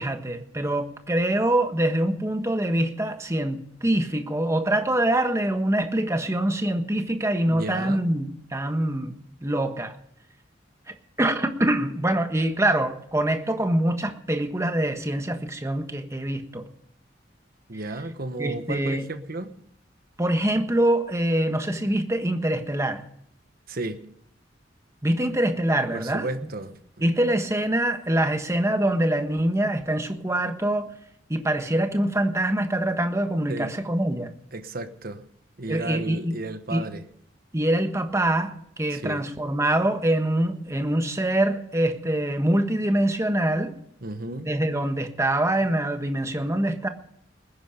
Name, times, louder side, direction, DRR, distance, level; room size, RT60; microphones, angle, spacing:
voice 1, 0.0-9.9 10.9-16.6 18.4-19.1 20.2-23.0 25.0-26.3 27.0-30.9 31.3-34.3 35.7-36.4 36.7-36.9 37.5-43.8 44.5-46.9, right 1 dB, 15° right, 1.4 m, -24 dB
voice 2, 7.5-8.1 17.7-19.5 23.7-24.0 25.9-27.0 33.5-33.8 34.5-35.2 35.6-37.0 38.9-39.2 44.0-44.5, right 2 dB, 55° right, 1.3 m, -33 dB
20.5 x 10.5 x 5.2 m
head